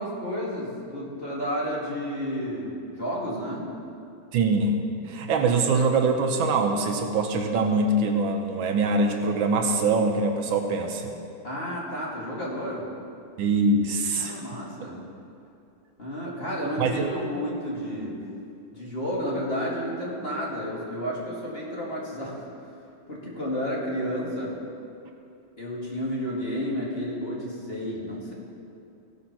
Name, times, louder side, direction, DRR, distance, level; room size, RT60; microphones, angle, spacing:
voice 1, 0.0-3.6 11.4-12.8 14.2-15.0 16.0-18.2 18.7-22.4 23.1-24.6 25.6-28.3, equal, 30° left, -5 dB, 2.3 m, -31 dB
voice 2, 4.3-11.1 13.4-14.4 16.8-17.1, right 3 dB, 75° right, 4 dB, 1.6 m, -23 dB
17.0 x 6.4 x 5.8 m, 2.6 s
omnidirectional pair, 2.2 m